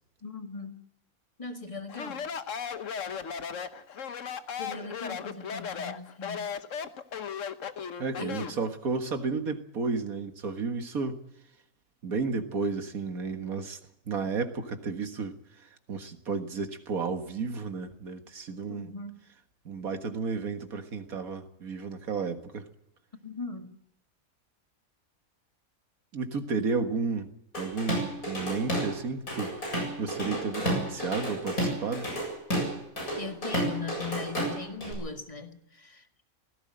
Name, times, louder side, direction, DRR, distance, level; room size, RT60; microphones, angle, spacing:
voice 1, 0.2-0.8 1.4-2.2 4.6-6.5 8.2-8.6 18.7-19.2 23.2-23.7 33.2-36.0, left 4 dB, 25° left, 1.9 m, -39 dB
Speech, 1.9-8.6, left 7 dB, 65° left, 1.4 m, -36 dB
voice 2, 8.0-11.2 12.0-13.8 14.1-15.4 15.9-18.9 19.7-22.7 26.1-32.1, right 4 dB, 85° right, 2.1 m, -32 dB
Drum kit / Drum, 27.5-28.9 29.3-34.9, equal, 85° left, 8.4 m, -31 dB
18.0 x 16.5 x 8.9 m
omnidirectional pair, 1.5 m